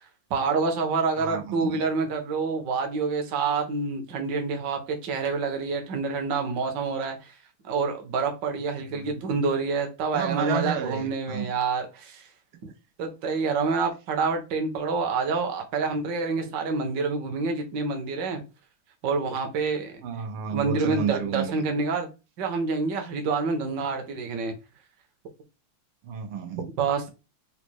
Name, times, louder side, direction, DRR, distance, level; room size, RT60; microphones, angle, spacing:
voice 1, 0.3-7.3 7.6-12.3 12.6-12.7 13.0-18.4 19.0-19.9 20.5-22.1 22.4-24.5 26.8-27.1, right 4 dB, 65° right, 1.3 m, -27 dB
voice 2, 1.2-1.8 8.9-9.1 10.1-11.5 20.0-21.6 26.0-26.7, right 8 dB, 80° right, 1.5 m, -31 dB
4.1 x 2.2 x 4.4 m
omnidirectional pair, 2.3 m